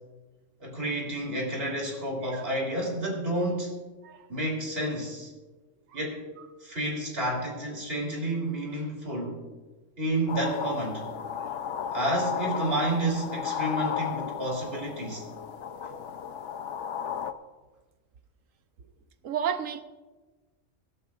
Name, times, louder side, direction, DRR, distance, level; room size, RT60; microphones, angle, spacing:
voice 1, 0.6-3.8 4.3-5.3 5.9-6.2 6.6-9.4 10.0-11.1 11.9-15.2, right 1 dB, 50° right, -1 dB, 3.7 m, -30 dB
sound 1, 10.3-17.3, left 8 dB, 70° left, 1.0 m, -34 dB
voice 2, 19.2-19.8, right 8 dB, 80° right, 9 dB, 1.2 m, -32 dB
25.0 x 12.0 x 2.5 m, 1.2 s
omnidirectional pair, 1.3 m